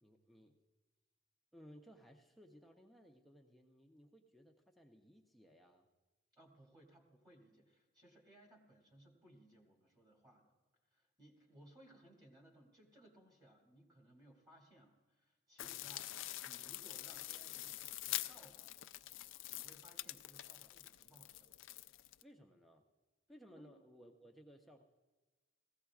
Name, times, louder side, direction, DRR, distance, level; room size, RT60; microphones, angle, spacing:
voice 1, 0.0-0.6 1.5-5.9 15.6-16.0 22.2-22.8 23.3-24.8, equal, ahead, 1 dB, 0.6 m, -61 dB
voice 2, 6.3-10.5 10.9-18.8 19.5-21.5 23.5-23.7, right 1 dB, 20° right, 0 dB, 2.3 m, -64 dB
sound 1, 15.6-22.2, left 15 dB, 70° left, 0.4 m, -46 dB
19.5 x 16.0 x 2.4 m, 1.3 s
head